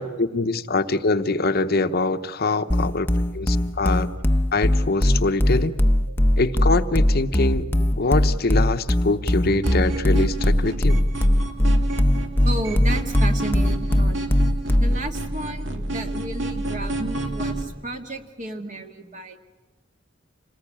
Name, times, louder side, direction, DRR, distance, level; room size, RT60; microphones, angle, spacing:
voice 1, 0.0-3.1 3.3-4.1 4.5-5.7 6.4-7.7 8.0-11.0, left 3 dB, 50° left, 10 dB, 0.8 m, -24 dB
sound 1, 2.7-15.1, left 1 dB, 10° left, 0.7 m, -20 dB
sound 2, 9.6-17.6, right 1 dB, 65° right, 2.5 m, -29 dB
voice 2, 12.4-14.2 14.8-19.4, right 1 dB, 40° right, 5 dB, 1.9 m, -33 dB
27.0 x 19.0 x 8.7 m, 1.2 s
head